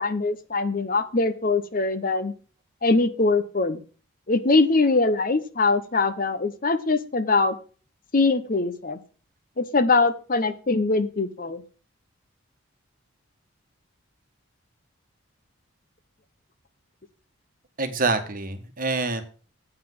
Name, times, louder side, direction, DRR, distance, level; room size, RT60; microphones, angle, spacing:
voice 1, 0.0-2.3 2.8-3.8 4.3-7.6 8.1-9.0 9.6-11.6, left 3 dB, 40° left, 11 dB, 0.8 m, -22 dB
voice 2, 17.8-19.2, right 3 dB, 40° right, 7 dB, 1.3 m, -26 dB
8.8 x 5.8 x 7.5 m, 0.39 s
head